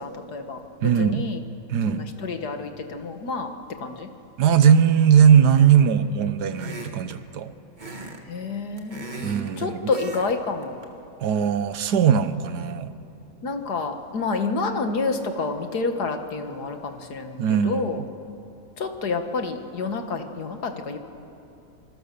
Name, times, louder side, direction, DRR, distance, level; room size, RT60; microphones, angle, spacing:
voice 1, 0.0-1.4 1.9-3.5 3.8-4.1 8.3-10.8 13.4-18.0 18.8-21.0, left 4 dB, 75° left, 6 dB, 2.1 m, -29 dB
voice 2, 0.8-1.2 1.7-2.1 4.4-7.5 9.2-9.9 11.2-12.9 17.4-17.8, right 8 dB, 80° right, 12 dB, 1.5 m, -19 dB
sound 1, 5.5-5.9 6.5-7.2 7.8-8.2 8.5-9.5 9.9-10.3 10.6-10.8, right 2 dB, 30° right, 1.9 m, -38 dB
25.5 x 25.0 x 6.9 m, 2.7 s
omnidirectional pair, 1.7 m